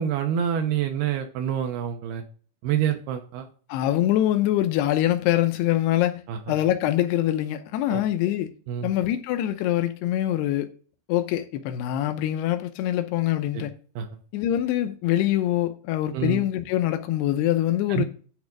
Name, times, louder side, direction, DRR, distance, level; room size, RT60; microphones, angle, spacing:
voice 1, 0.0-2.2 2.6-3.5 6.3-6.6 7.9-8.0 8.7-8.9 13.5-13.6 14.0-14.1 16.1-16.4 17.9-18.0, right 9 dB, 75° right, 2.8 m, -27 dB
voice 2, 3.7-6.2 6.5-8.5 8.8-10.7 11.1-13.7 14.3-18.0, left 13 dB, 85° left, 2.8 m, -24 dB
10.5 x 3.6 x 6.4 m
omnidirectional pair, 4.7 m